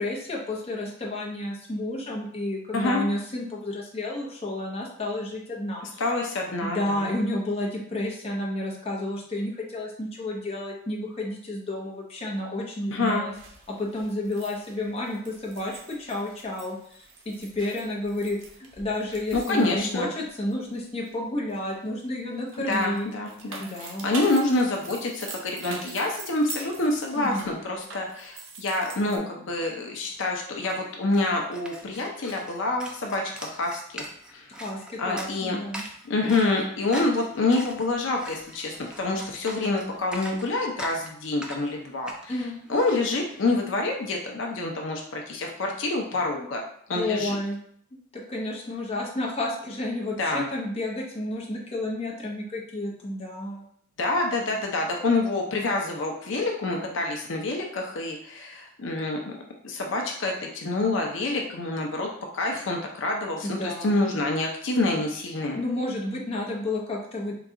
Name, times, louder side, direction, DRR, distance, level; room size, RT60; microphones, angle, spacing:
voice 1, 0.0-6.0 6.6-13.3 13.7-18.4 18.8-23.1 23.6-24.1 27.2-27.5 34.5-35.8 42.3-42.6 46.9-47.6 48.1-53.7 63.4-64.0 65.6-67.3, left 1 dB, 30° left, -2 dB, 0.7 m, -31 dB
voice 2, 6.0-7.1 12.9-13.2 19.3-20.1 22.7-34.0 34.3-34.5 35.0-35.6 36.0-46.6 46.9-47.4 50.2-50.4 54.0-59.3 59.6-62.1 62.3-65.6, left 2 dB, 70° left, 1 dB, 0.6 m, -27 dB
sound 1, 13.3-21.1 21.5-29.2, right 4 dB, 75° right, 0.8 m, -44 dB
sound 2, 29.8-29.9 30.1-43.9, equal, 5° right, 0.4 m, -43 dB
3.9 x 2.3 x 3.6 m, 0.65 s
head